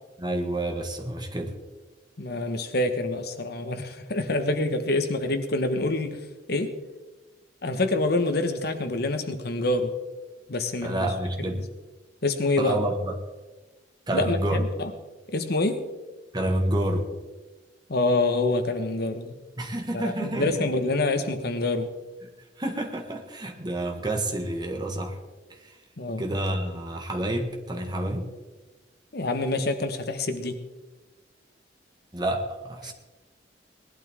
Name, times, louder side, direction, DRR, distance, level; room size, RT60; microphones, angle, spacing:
voice 1, 0.2-1.5 10.8-11.6 12.6-13.1 14.1-14.6 16.3-17.0 19.6-20.7 22.6-25.2 25.5-25.8 26.2-28.3 32.1-32.9, right 1 dB, 25° right, 2 dB, 1.7 m, -29 dB
voice 2, 2.2-6.2 6.5-6.7 7.6-9.9 10.5-11.1 12.2-12.8 14.1-14.9 15.3-15.8 17.9-19.4 19.9-21.9 26.0-26.2 29.1-30.6 32.8-32.9, left 2 dB, 60° left, 8 dB, 1.3 m, -26 dB
20.0 x 12.0 x 3.7 m, 1.2 s
head